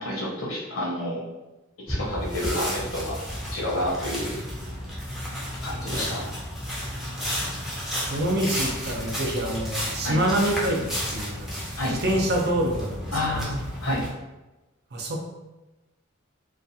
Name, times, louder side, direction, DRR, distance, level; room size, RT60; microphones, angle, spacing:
voice 1, 0.0-1.2 1.9-3.2 3.5-4.4 5.6-6.2 10.0-10.2 11.8-12.0 13.1-14.1, left 1 dB, 75° left, -3 dB, 0.8 m, -29 dB
sound 1, 1.9-14.1, equal, ahead, 0.5 m, -32 dB
voice 2, 8.1-11.5 11.9-13.4 14.9-15.2, right 1 dB, 55° right, 0 dB, 0.5 m, -26 dB
2.4 x 2.3 x 2.6 m, 1.1 s
head